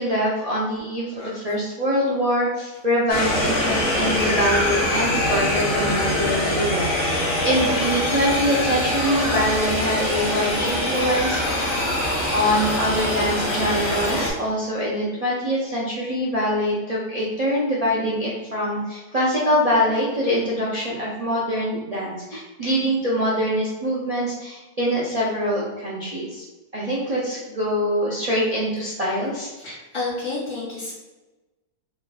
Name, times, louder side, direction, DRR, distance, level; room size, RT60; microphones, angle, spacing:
voice 1, 0.0-11.8 12.3-26.4 26.7-29.5, equal, 60° right, -6 dB, 0.3 m, -24 dB
voice 2, 1.1-1.5 29.6-30.9, left 3 dB, 20° left, -7 dB, 1.1 m, -31 dB
sound 1, 3.1-14.3, left 1 dB, 55° left, 1.5 m, -23 dB
3.2 x 2.3 x 3.9 m, 1.1 s
omnidirectional pair, 1.6 m